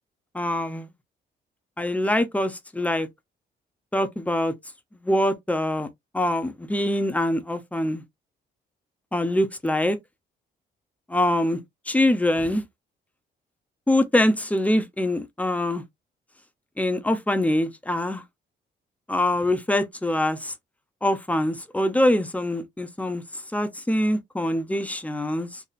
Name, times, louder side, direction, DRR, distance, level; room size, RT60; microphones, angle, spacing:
voice 1, 0.3-0.9 1.8-3.1 3.9-4.5 5.0-5.9 6.1-8.0 9.1-10.0 11.1-11.6 11.9-12.6 13.9-15.8 16.8-18.2 19.1-20.5 21.0-23.2 23.5-25.6, left 1 dB, 10° left, 0.8 m, -24 dB
4.1 x 2.7 x 2.5 m
cardioid pair, 105°, 19 cm